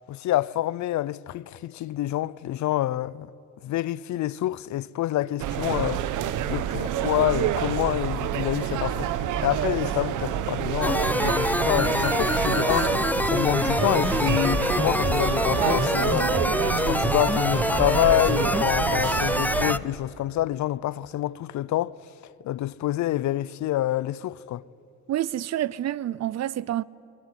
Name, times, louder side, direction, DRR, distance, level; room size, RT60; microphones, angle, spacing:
voice 1, 0.1-3.3 3.6-6.0 6.5-9.1 9.4-13.0 13.3-16.3 16.8-22.0 22.4-24.6, left 14 dB, 70° left, 0.6 m, -27 dB
sound 1, 5.4-19.7, right 10 dB, 90° right, 1.1 m, -28 dB
sound 2, 10.8-19.8, left 1 dB, 5° left, 0.5 m, -25 dB
voice 2, 25.1-26.8, right 12 dB, 60° right, 0.6 m, -28 dB
21.5 x 19.5 x 9.8 m
cardioid pair, 90°, 30 cm